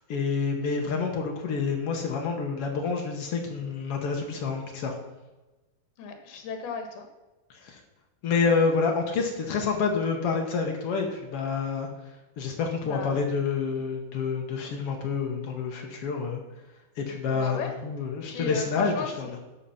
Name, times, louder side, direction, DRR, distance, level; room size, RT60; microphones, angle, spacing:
voice 1, 0.1-5.0 7.5-7.8 8.2-11.9 12.4-16.4 17.0-19.4, left 5 dB, 65° left, 2 dB, 1.4 m, -28 dB
voice 2, 6.0-7.0 12.8-13.2 17.3-17.7 18.3-19.1, left 5 dB, 85° left, 5 dB, 3.4 m, -34 dB
13.0 x 5.7 x 5.8 m, 1.1 s
omnidirectional pair, 4.3 m